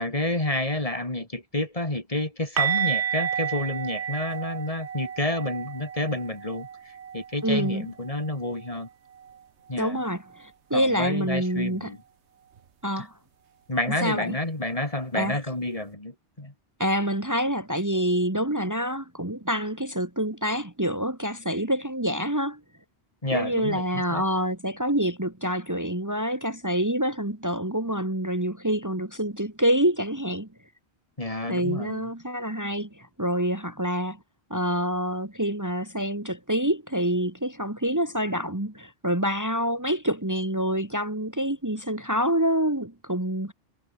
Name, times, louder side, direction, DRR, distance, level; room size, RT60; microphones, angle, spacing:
voice 1, 0.0-8.9 9.7-10.0 10.7-12.0 13.0-13.1 13.7-16.5 23.2-24.2 31.2-32.1, left 1 dB, 30° left, 2.9 m, -29 dB
sound 1, 2.6-8.3 8.6-8.9 9.2-9.4 12.6-12.7, right 8 dB, 75° right, 1.3 m, -31 dB
voice 2, 7.4-7.9 9.8-11.9 12.8-13.1 14.0-14.3 15.2-15.4 16.8-22.6 23.3-30.5 31.5-34.2 34.5-43.5, equal, 15° right, 1.9 m, -27 dB
omnidirectional pair, 1.2 m